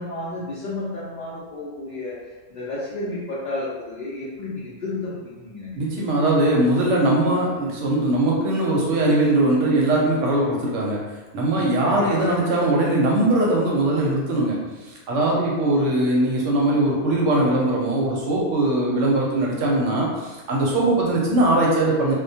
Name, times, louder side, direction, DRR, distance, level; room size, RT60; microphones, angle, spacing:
voice 1, 0.0-2.1 2.5-5.8 11.8-12.3, left 2 dB, 55° left, -9 dB, 0.5 m, -31 dB
voice 2, 5.7-11.0 11.3-22.1, right 1 dB, 70° right, -3 dB, 0.8 m, -21 dB
2.2 x 2.1 x 2.6 m, 1.2 s
omnidirectional pair, 1.4 m